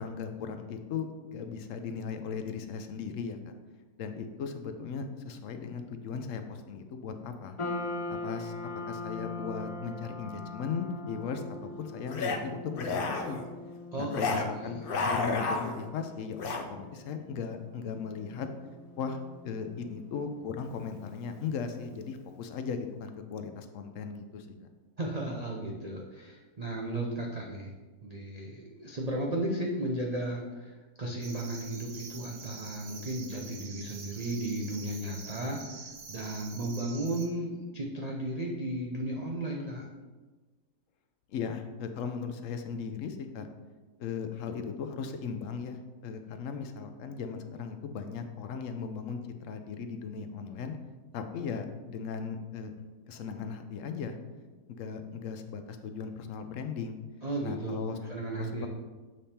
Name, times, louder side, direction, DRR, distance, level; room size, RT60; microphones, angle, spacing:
voice 1, 0.0-3.4 4.0-7.6 8.1-8.5 8.9-11.4 11.8-13.4 14.0-16.4 16.7-18.5 19.0-19.2 19.4-24.7 41.3-43.5 44.0-50.8 51.1-52.7 53.1-54.1 54.7-57.0 57.4-58.0 58.4-58.7, left 6 dB, 65° left, 7 dB, 0.8 m, -37 dB
sound 1, 7.6-22.0, left 2 dB, 35° left, 0.5 m, -42 dB
sound 2, 12.1-12.4 12.7-13.4 14.1-14.5 14.8-15.9 16.4-16.6, left 3 dB, 90° left, 0.4 m, -31 dB
voice 2, 13.9-14.8 25.0-27.7 28.0-39.9 57.2-58.7, right 1 dB, 70° right, -1 dB, 0.3 m, -35 dB
sound 3, 31.2-37.3, right 4 dB, 55° right, 0.9 m, -46 dB
7.5 x 3.5 x 4.2 m, 1.3 s
omnidirectional pair, 1.7 m